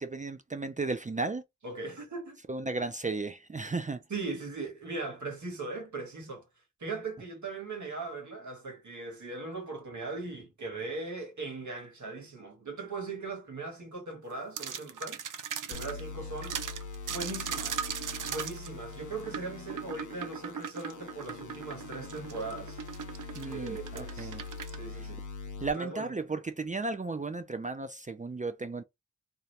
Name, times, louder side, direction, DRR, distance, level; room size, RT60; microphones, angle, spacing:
voice 1, 0.0-1.4 2.5-4.0 23.3-24.4 25.6-28.8, right 3 dB, 25° right, 0.4 m, -34 dB
voice 2, 1.6-2.4 4.1-6.4 6.8-15.2 15.7-16.6 17.1-17.8 18.2-22.8 23.5-24.4 24.8-25.2 25.7-26.3, right 3 dB, 70° right, 1.4 m, -39 dB
sound 1, 14.6-16.0 16.4-24.8, right 8 dB, 85° right, 0.5 m, -38 dB
sound 2, 15.7-25.7, left 4 dB, 75° left, 0.7 m, -43 dB
2.8 x 2.3 x 3.2 m
wide cardioid pair, 65°, 31 cm